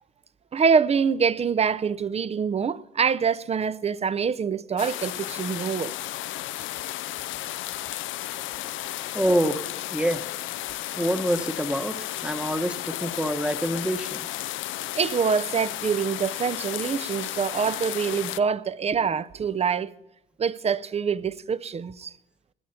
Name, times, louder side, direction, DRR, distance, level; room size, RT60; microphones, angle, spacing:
voice 1, 0.5-5.9 8.8-8.9 14.9-19.9 20.4-22.1, right 6 dB, 30° right, 0.5 m, -25 dB
sound 1, 4.8-18.4, left 15 dB, 80° left, 0.4 m, -33 dB
voice 2, 8.6-9.6 9.9-10.2 11.0-12.0 12.2-14.3, equal, 5° right, 1.0 m, -26 dB
18.0 x 10.0 x 4.3 m
cardioid pair, 90°, 20 cm